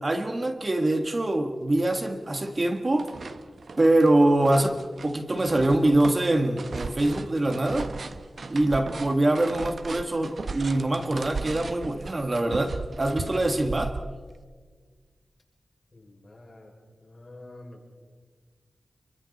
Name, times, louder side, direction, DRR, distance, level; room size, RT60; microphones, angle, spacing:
voice 1, 0.0-3.1 3.8-7.9 8.5-14.0, right 1 dB, 35° right, 5 dB, 1.8 m, -24 dB
sound 1, 1.3-1.4 1.8-2.5 2.8-14.4, right 4 dB, 70° right, 1.3 m, -37 dB
voice 2, 15.9-16.7 17.0-17.9, left 2 dB, 40° left, 0 dB, 6.3 m, -47 dB
30.0 x 24.0 x 4.3 m, 1.5 s
wide cardioid pair, 85°, 0 cm